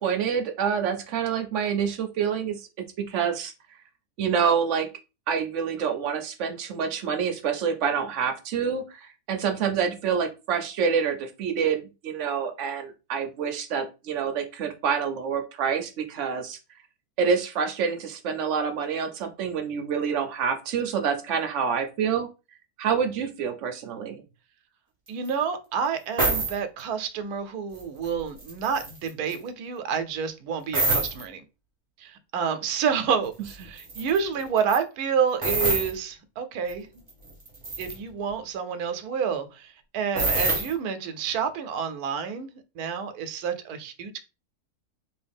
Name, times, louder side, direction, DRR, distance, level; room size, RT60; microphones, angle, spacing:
voice 1, 0.0-2.7 3.0-3.5 4.2-4.9 5.3-16.6 17.2-22.3 22.8-24.2, right 6 dB, 65° right, 0.9 m, -27 dB
voice 2, 25.1-31.4 32.0-36.9 37.8-44.2, right 6 dB, 85° right, 1.1 m, -29 dB
sound 1, 25.3-25.4 26.2-26.5 27.7-28.1 28.4-29.3 30.7-31.2 33.5-33.6 33.8-34.2 34.6-34.8 35.4-35.9 36.7-36.8 37.1-38.0 40.2-40.7, right 2 dB, 25° right, 0.9 m, -26 dB
3.0 x 2.8 x 3.4 m
omnidirectional pair, 1.6 m